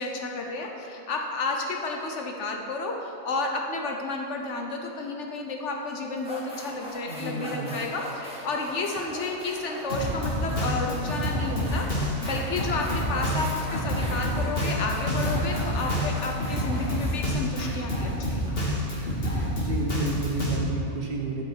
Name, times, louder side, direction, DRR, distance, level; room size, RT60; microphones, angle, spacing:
voice 1, 0.0-18.4, left 3 dB, 65° left, 2 dB, 1.0 m, -31 dB
sound 1, 5.6-5.7 6.2-18.5, equal, 5° right, 1.4 m, -40 dB
voice 2, 7.0-7.8 10.7-10.9 19.6-21.4, right 3 dB, 50° right, -1 dB, 1.1 m, -32 dB
Drum kit, 9.9-20.6, equal, 45° left, 1.7 m, -28 dB
11.0 x 4.7 x 4.5 m, 2.6 s
omnidirectional pair, 1.4 m